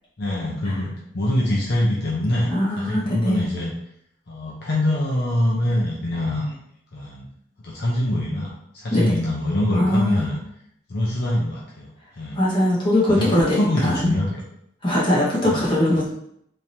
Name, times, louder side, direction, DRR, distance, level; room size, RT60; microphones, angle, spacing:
voice 1, 0.2-2.5 2.8-3.7 4.3-6.6 6.9-7.3 7.6-10.4 10.9-11.9 12.2-12.4 13.1-14.4 15.4-15.6 15.9-16.1, left 1 dB, 60° left, -5 dB, 0.7 m, -24 dB
voice 2, 2.5-3.4 8.9-9.0 9.7-10.3 12.3-14.1 14.8-16.0, left 1 dB, 30° left, -8 dB, 1.4 m, -21 dB
3.7 x 3.1 x 2.7 m, 0.73 s
head